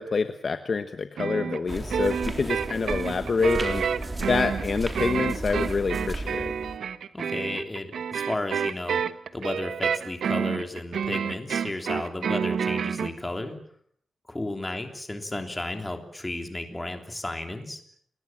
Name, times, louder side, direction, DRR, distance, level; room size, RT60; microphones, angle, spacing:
voice 1, 0.0-6.5, left 4 dB, 40° left, 9 dB, 1.2 m, -27 dB
sound 1, 1.2-13.1, right 7 dB, 85° right, 1.2 m, -29 dB
sound 2, 1.7-6.8, right 2 dB, 15° right, 3.7 m, -34 dB
voice 2, 7.1-9.0 9.3-13.6 14.3-17.8, left 1 dB, 15° left, 5 dB, 3.4 m, -33 dB
29.0 x 21.0 x 7.5 m, 0.64 s
wide cardioid pair, 155°, 0 cm